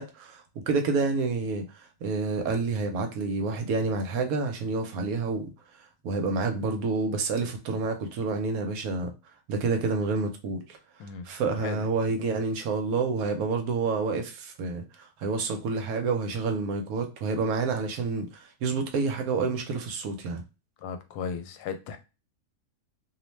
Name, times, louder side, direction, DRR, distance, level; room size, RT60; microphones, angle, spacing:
voice 1, 0.0-5.5 6.0-9.1 9.5-10.8 11.2-20.4, right 4 dB, 75° right, 1.0 m, -28 dB
voice 2, 20.8-22.0, left 6 dB, 85° left, 1.1 m, -35 dB
2.7 x 2.1 x 3.1 m
omnidirectional pair, 1.7 m